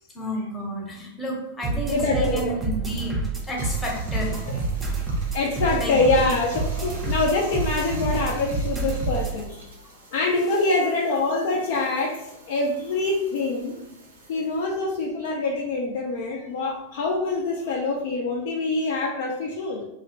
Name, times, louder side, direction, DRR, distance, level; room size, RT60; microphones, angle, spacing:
voice 1, 0.1-3.2 3.5-4.9 5.8-5.9, equal, 15° left, -2 dB, 0.8 m, -31 dB
sound 1, 1.6-9.4, right 3 dB, 15° right, 0.5 m, -28 dB
voice 2, 1.9-2.6 4.2-4.6 5.3-9.6 10.1-13.8 14.3-19.8, left 3 dB, 55° left, 0 dB, 0.3 m, -25 dB
Bathtub (filling or washing), 3.4-16.2 16.5-18.3, right 2 dB, 70° right, 0.6 m, -47 dB
2.7 x 2.0 x 2.6 m, 0.88 s
figure-of-eight pair, 90°, 0 cm